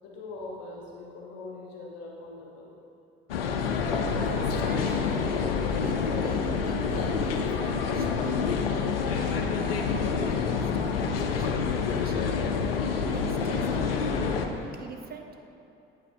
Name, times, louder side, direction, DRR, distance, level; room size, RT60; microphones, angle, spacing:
voice 1, 0.0-2.7, left 2 dB, 60° left, -3 dB, 1.6 m, -42 dB
sound 1, 3.3-14.5, left 5 dB, 80° left, 0.5 m, -27 dB
voice 2, 4.3-5.4 5.8-8.4 9.1-12.3 13.0-15.3, right 4 dB, 30° right, 4 dB, 0.7 m, -42 dB
9.2 x 5.8 x 3.5 m, 2.8 s
figure-of-eight pair, 50°, 29 cm